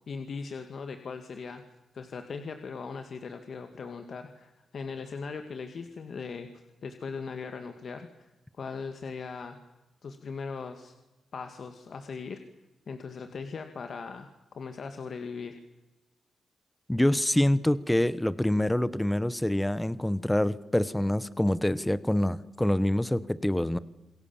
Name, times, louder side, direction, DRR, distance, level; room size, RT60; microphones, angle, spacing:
voice 1, 0.1-1.6 1.9-6.5 6.8-8.3 8.6-9.6 10.0-10.9 11.3-12.4 12.9-15.6, left 5 dB, 60° left, 7 dB, 2.1 m, -39 dB
voice 2, 16.9-23.8, left 1 dB, 10° left, 17 dB, 1.1 m, -26 dB
27.5 x 22.0 x 7.3 m, 1.1 s
cardioid pair, 65°, 0 cm